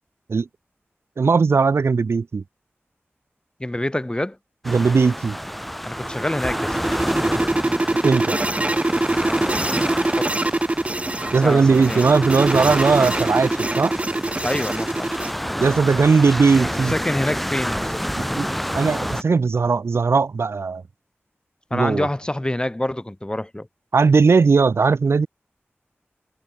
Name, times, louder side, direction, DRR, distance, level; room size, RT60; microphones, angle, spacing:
voice 1, 1.2-2.4 4.7-5.4 8.0-8.4 11.3-13.9 15.6-16.9 18.4-18.5 18.7-20.8 21.7-22.1 23.9-25.3, right 4 dB, 90° right, 0.8 m, -18 dB
voice 2, 3.6-4.4 5.9-6.8 10.0-10.4 11.4-12.1 14.4-15.3 16.9-18.0 21.7-23.7, left 1 dB, 20° left, 2.3 m, -26 dB
sound 1, 4.6-19.2, equal, ahead, 3.3 m, -29 dB
sound 2, 5.9-15.3, right 2 dB, 30° right, 0.8 m, -23 dB
wide cardioid pair, 60°, 4 cm